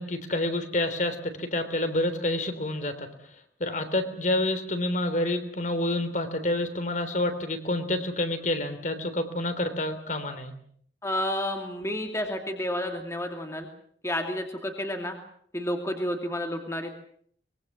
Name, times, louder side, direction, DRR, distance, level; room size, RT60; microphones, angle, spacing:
voice 1, 0.0-10.5, left 1 dB, 45° left, 9 dB, 3.4 m, -28 dB
voice 2, 11.0-13.7 14.0-15.2 15.5-17.0, left 1 dB, 15° left, 4 dB, 2.5 m, -30 dB
24.0 x 22.5 x 7.4 m, 0.62 s
head